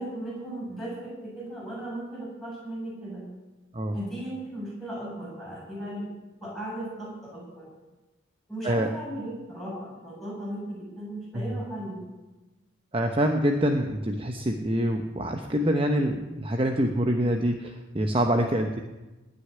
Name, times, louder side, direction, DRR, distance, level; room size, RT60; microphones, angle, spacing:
voice 1, 0.0-3.2 3.9-6.1 6.4-7.7 8.5-11.9, right 1 dB, ahead, -6 dB, 7.1 m, -36 dB
voice 2, 12.9-18.8, equal, 25° right, 4 dB, 0.8 m, -25 dB
19.0 x 6.5 x 9.9 m, 1.1 s
head